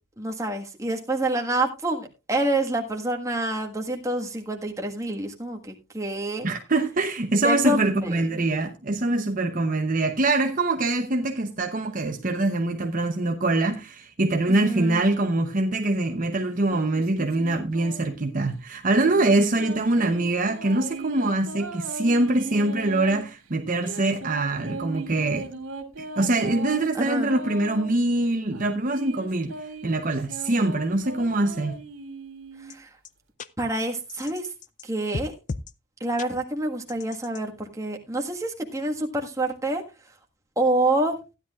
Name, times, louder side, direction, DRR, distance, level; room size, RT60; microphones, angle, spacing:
voice 1, 0.2-6.5 7.4-8.2 14.5-15.0 27.0-27.3 32.7-32.9 33.6-34.5 34.8-35.3 36.0-39.8 40.6-41.2, right 1 dB, 15° right, 1.5 m, -27 dB
voice 2, 6.4-25.5 26.0-29.5 29.8-31.7, right 2 dB, 40° right, 0.8 m, -24 dB
sound 1, 16.7-18.2 18.9-23.2 23.7-27.9 28.5-32.7, right 2 dB, 75° right, 2.3 m, -38 dB
sound 2, 32.7-32.8 33.1-33.2 33.4-33.5 34.1-34.9 35.1-35.7 36.2-36.3 36.9-37.4, left 3 dB, 35° left, 0.5 m, -34 dB
15.0 x 10.5 x 2.4 m
head